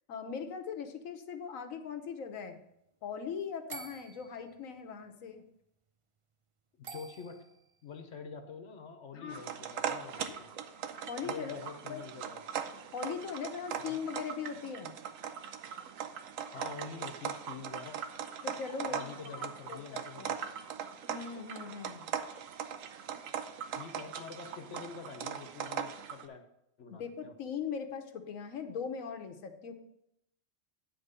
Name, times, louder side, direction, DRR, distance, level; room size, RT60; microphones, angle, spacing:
voice 1, 0.1-2.6 3.0-5.4 9.1-9.5 10.2-10.4 11.1-11.6 11.9-12.0 12.9-14.9 18.4-20.4 21.1-22.1 26.9-29.7, left 6 dB, 90° left, 7 dB, 1.3 m, -40 dB
sound 1, 3.7-4.6 6.8-7.7, right 5 dB, 60° right, 0.3 m, -47 dB
voice 2, 6.8-7.4 7.8-10.5 11.2-12.5 13.9-14.1 16.5-18.0 18.8-20.3 23.7-26.4 26.8-27.4, left 5 dB, 65° left, 7 dB, 1.1 m, -46 dB
sound 2, 9.3-26.2, right 8 dB, 80° right, 1.1 m, -40 dB
10.0 x 4.4 x 6.7 m, 0.80 s
omnidirectional pair, 1.3 m